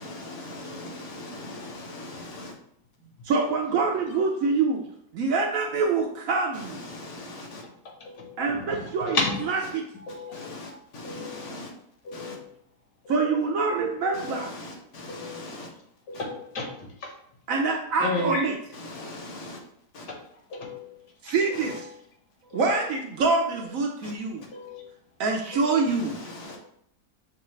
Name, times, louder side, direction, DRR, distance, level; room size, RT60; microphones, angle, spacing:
voice 1, 0.0-2.5 6.5-7.6 10.3-11.7 12.1-12.4 14.1-15.7 18.7-19.6 19.9-20.1 21.5-21.8 24.0-24.1 25.9-26.6, left 2 dB, 55° left, 0.9 m, -40 dB
voice 2, 3.2-4.8 5.1-6.9 8.4-9.2 9.5-9.9 13.1-14.5 17.5-18.6 21.2-21.9 22.5-24.4 25.2-26.2, right 4 dB, 70° right, 0.8 m, -25 dB
voice 3, 8.0-9.5 10.1-10.5 11.0-11.5 12.1-12.5 13.1-13.4 14.1-14.4 15.1-15.4 16.1-16.6 18.0-18.4 20.5-21.0 21.5-21.8 22.5-22.7 24.5-24.8 25.5-25.8, left 3 dB, 85° left, 1.7 m, -33 dB
5.7 x 2.3 x 3.1 m
omnidirectional pair, 1.8 m